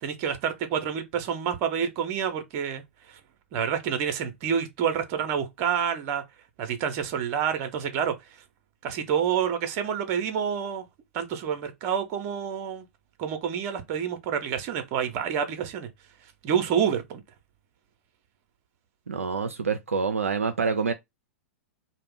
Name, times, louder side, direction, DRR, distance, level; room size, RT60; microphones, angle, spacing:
voice 1, 0.0-2.8 3.1-3.2 3.5-6.2 6.6-8.2 8.8-10.8 11.1-12.8 13.2-15.9 16.4-17.2, right 8 dB, 40° right, 0.7 m, -28 dB
voice 2, 19.1-20.9, right 5 dB, 85° right, 0.3 m, -27 dB
2.3 x 2.1 x 3.6 m
figure-of-eight pair, 100°, 7 cm